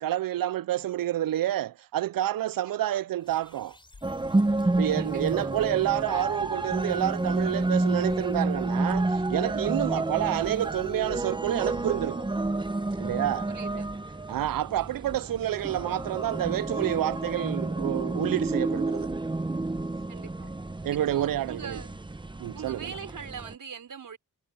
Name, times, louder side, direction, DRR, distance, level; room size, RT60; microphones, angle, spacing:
voice 1, 0.0-3.8 4.8-12.3 13.0-13.5 14.3-19.1 20.8-21.8 22.4-23.0, right 13 dB, 90° right, 0.5 m, -29 dB
voice 2, 2.5-3.1 5.0-5.5 9.8-10.2 13.5-13.9 20.1-20.5 20.9-21.9 22.5-24.2, right 6 dB, 75° right, 5.7 m, -43 dB
sound 1, 3.2-12.4, left 2 dB, 15° left, 4.2 m, -57 dB
sound 2, 3.9-4.3 4.8-5.1 5.6-5.9 6.4-6.8 7.3-7.6 8.1-8.4 8.9-9.3 9.8-10.1 10.4-10.7 11.1-11.4 11.7-12.1 12.4-12.7 13.1-13.4 13.7-14.1 14.4-14.7 15.1-15.4 15.7-16.1 16.4-16.7 17.1-17.4 17.7-18.1 18.4-18.7 19.1-19.4 19.7-20.1 20.4-20.7 21.1-21.4 21.7-22.0, left 4 dB, 35° left, 4.5 m, -50 dB
sound 3, 4.0-23.5, right 2 dB, 15° right, 0.8 m, -30 dB
wide cardioid pair, 165°, 33 cm